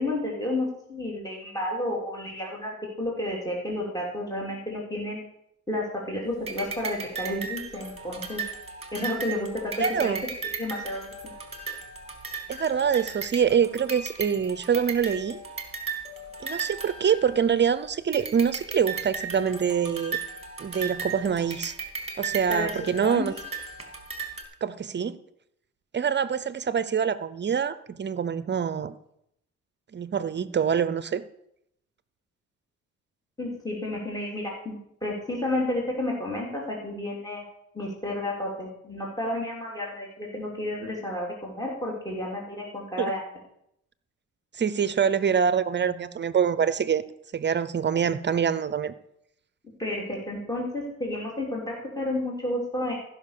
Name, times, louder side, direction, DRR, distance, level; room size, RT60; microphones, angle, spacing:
voice 1, 0.0-5.2 5.7-8.4 8.9-9.5 10.0-10.1 10.5-11.1 22.5-22.7 23.0-23.3 33.4-37.4 37.7-43.2 49.8-52.9, left 1 dB, 10° left, -2 dB, 3.1 m, -31 dB
sound 1, 6.5-17.7 18.1-24.4, right 4 dB, 20° right, 2.4 m, -36 dB
voice 2, 9.8-10.2 12.5-15.4 16.4-20.2 20.6-21.7 22.2-23.3 24.6-25.2 25.9-28.9 29.9-31.2 43.0-43.1 44.5-47.0 47.3-48.9, right 7 dB, 35° right, 15 dB, 0.7 m, -25 dB
14.5 x 5.9 x 6.7 m, 0.76 s
cardioid pair, 90°, 30 cm